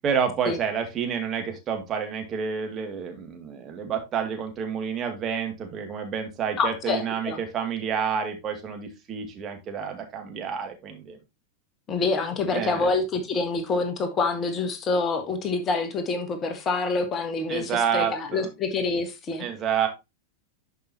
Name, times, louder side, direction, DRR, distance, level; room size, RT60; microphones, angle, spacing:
voice 1, 0.0-11.2 12.5-12.9 17.5-18.5 19.4-19.9, right 7 dB, 30° right, 2.2 m, -29 dB
voice 2, 6.6-7.4 11.9-19.4, left 3 dB, 25° left, 1.4 m, -26 dB
11.0 x 5.3 x 2.8 m
figure-of-eight pair, 90°, 0 cm